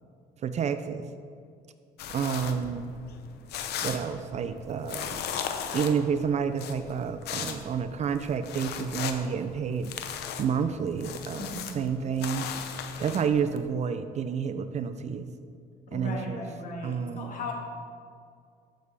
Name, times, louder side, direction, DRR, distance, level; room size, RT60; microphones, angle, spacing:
voice 1, 0.4-1.1 2.1-3.0 3.8-5.3 5.7-9.9 10.4-12.5 13.0-15.3 15.9-16.5 16.8-17.4, right 7 dB, 40° right, 10 dB, 0.5 m, -29 dB
sound 1, 2.0-13.6, left 8 dB, 75° left, 0.8 m, -38 dB
voice 2, 11.4-11.8 15.9-17.5, left 2 dB, 50° left, -1 dB, 2.0 m, -37 dB
14.0 x 6.7 x 3.4 m, 2.3 s
cardioid pair, 110°, 17 cm